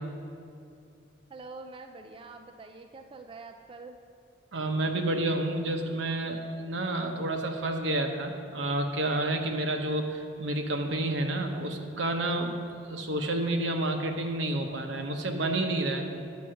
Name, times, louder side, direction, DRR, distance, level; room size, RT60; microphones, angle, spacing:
voice 1, 1.3-4.0, right 3 dB, 30° right, 5 dB, 0.4 m, -45 dB
voice 2, 4.5-12.6 12.9-16.1, right 1 dB, 80° right, 4 dB, 0.9 m, -29 dB
9.3 x 5.6 x 6.2 m, 2.6 s
head